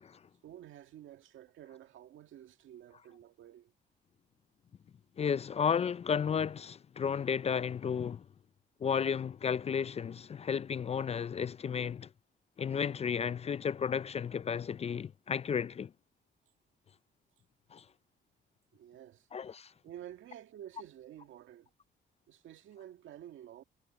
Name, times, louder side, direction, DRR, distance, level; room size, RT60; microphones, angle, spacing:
voice 1, 0.4-3.7 18.7-19.3 19.8-21.7 22.3-23.6, right 11 dB, 80° right, 2.1 m, -51 dB
voice 2, 5.2-8.2 8.8-12.1 12.6-15.9 17.7-17.8 19.3-19.7, left 7 dB, 30° left, 0.4 m, -33 dB
cardioid pair, 90°, 20 cm